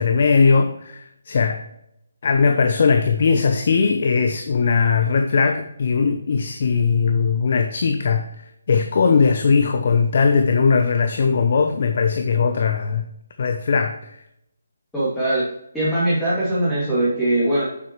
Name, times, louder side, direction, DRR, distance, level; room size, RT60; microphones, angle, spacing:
voice 1, 0.0-1.6 2.2-13.1 13.4-14.2, left 5 dB, 50° left, 0.8 m, -19 dB
voice 2, 14.9-15.5 15.7-17.6, right 1 dB, 5° left, 2.7 m, -21 dB
9.5 x 7.6 x 3.1 m
figure-of-eight pair, 150°, 0 cm